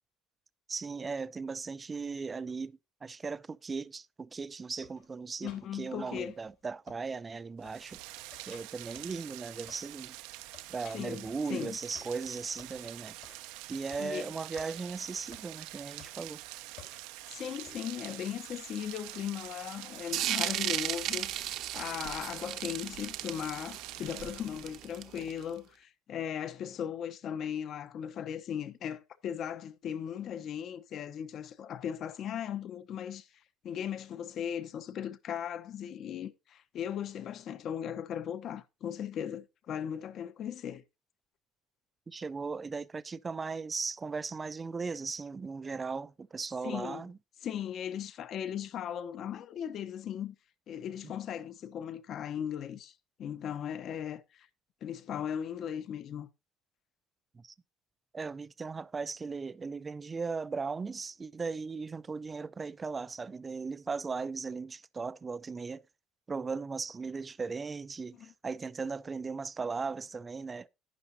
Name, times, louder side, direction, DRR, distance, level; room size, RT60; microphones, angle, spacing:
voice 1, 0.7-8.0 8.4-10.2 10.7-13.2 13.7-16.4 42.1-47.2 51.0-51.1 57.3-57.5 58.1-65.8 66.3-70.7, right 4 dB, 20° right, 0.5 m, -37 dB
sound 1, 4.8-6.6 6.9-7.4 7.6-10.0 10.3-11.5 11.9-12.8 13.2-13.5 13.7-14.2 14.6-14.7 15.3-15.5 16.0-16.4 16.8-17.1 17.6-17.8, left 9 dB, 70° left, 3.7 m, -56 dB
voice 2, 5.4-6.4 10.9-11.8 14.0-14.3 17.3-33.3 33.6-40.8 46.6-47.0 47.4-50.3 50.7-52.9 53.2-54.5 54.8-56.3 68.2-68.3, left 9 dB, 45° left, 0.9 m, -38 dB
Rain, 7.6-25.0, right 17 dB, 85° right, 0.8 m, -46 dB
sound 2, 20.1-25.4, right 12 dB, 60° right, 0.9 m, -35 dB
11.5 x 9.9 x 2.7 m
cardioid pair, 135°, 0 cm